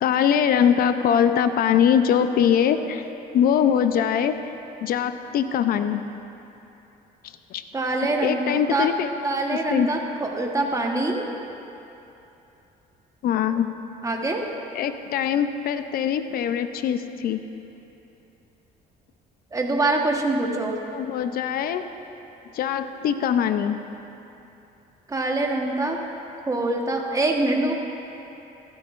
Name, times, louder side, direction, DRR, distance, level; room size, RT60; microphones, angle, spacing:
voice 1, 0.0-3.0 3.3-4.5 4.8-6.0 7.5-7.6 8.2-9.1 9.5-9.9 13.2-13.7 14.7-17.4 20.9-21.9 22.5-23.8, left 8 dB, 60° left, 9 dB, 0.6 m, -22 dB
voice 2, 7.7-8.9 9.2-11.3 14.0-14.4 19.5-20.8 25.1-26.0 26.5-27.8, right 2 dB, 20° right, 1 dB, 1.2 m, -24 dB
15.0 x 12.5 x 2.5 m, 3.0 s
cardioid pair, 110°, 17 cm